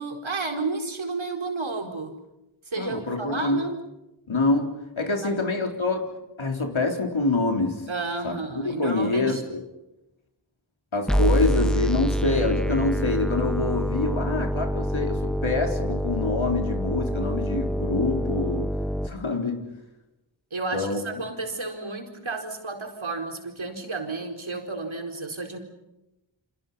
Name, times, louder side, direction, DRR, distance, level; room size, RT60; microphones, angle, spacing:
voice 1, 0.0-2.2 2.7-3.8 5.2-5.4 7.9-9.4 20.5-25.6, right 3 dB, 80° right, 3 dB, 4.4 m, -32 dB
voice 2, 2.8-3.6 4.3-7.9 8.2-8.3 8.6-9.6 10.9-18.7 19.0-19.7 20.7-21.0, left 3 dB, 85° left, 3 dB, 4.0 m, -26 dB
sound 1, 11.1-19.1, equal, ahead, 1.1 m, -26 dB
29.5 x 27.0 x 5.7 m, 0.95 s
wide cardioid pair, 45°, 46 cm